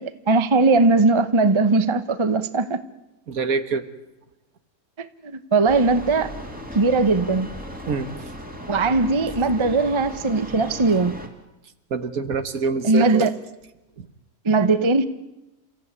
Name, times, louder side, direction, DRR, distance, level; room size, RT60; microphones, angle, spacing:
voice 1, 0.0-2.8 5.0-6.3 6.7-7.5 8.7-11.2 12.8-13.3 14.4-15.0, right 3 dB, 25° right, 0.8 m, -19 dB
voice 2, 3.3-3.8 7.9-8.1 11.9-13.3 14.0-14.1, right 5 dB, 65° right, 1.8 m, -25 dB
sound 1, 5.7-11.3, equal, 5° right, 2.8 m, -36 dB
28.5 x 15.5 x 9.6 m
omnidirectional pair, 1.7 m